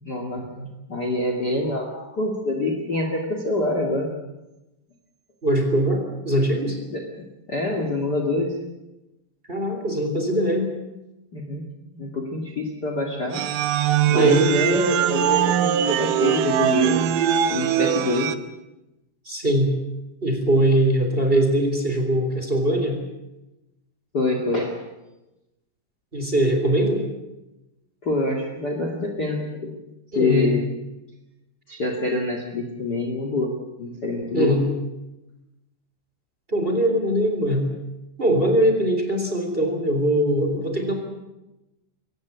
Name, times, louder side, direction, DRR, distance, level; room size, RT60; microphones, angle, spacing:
voice 1, 0.0-4.2 6.9-7.0 7.5-8.5 11.3-11.6 11.9-13.5 14.1-17.0 17.5-18.3 24.1-24.8 28.0-29.7 30.2-30.7 31.7-33.5 33.8-34.6, left 2 dB, 30° left, 3 dB, 2.5 m, -25 dB
voice 2, 5.4-6.8 9.5-10.7 14.1-14.5 19.2-19.7 20.2-23.0 26.1-27.0 30.1-30.5 34.3-34.6 36.5-37.7 38.2-40.9, right 1 dB, 15° right, 4 dB, 3.5 m, -21 dB
sound 1, 13.3-18.3, right 10 dB, 75° right, 2.5 m, -21 dB
23.5 x 18.0 x 8.4 m, 0.98 s
omnidirectional pair, 4.0 m